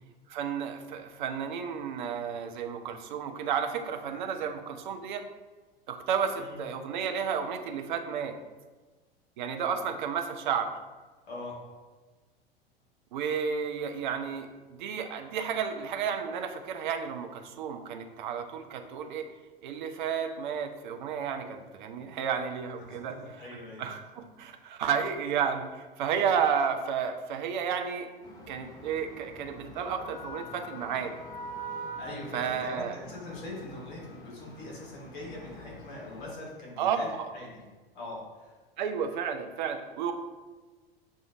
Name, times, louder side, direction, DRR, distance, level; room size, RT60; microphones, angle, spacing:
voice 1, 0.3-5.2 5.9-8.4 9.4-10.7 13.1-19.3 19.6-23.5 23.8-28.1 28.5-31.1 32.3-32.9 36.8-37.3 38.8-40.1, right 7 dB, 50° right, 6 dB, 0.5 m, -32 dB
voice 2, 11.3-11.6 22.9-23.9 24.4-24.5 31.8-37.6 37.9-38.5, left 2 dB, 55° left, -4 dB, 1.5 m, -42 dB
sound 1, 28.2-36.3, right 1 dB, 15° left, 0.3 m, -45 dB
6.2 x 2.5 x 2.5 m, 1.3 s
figure-of-eight pair, 90°, 30 cm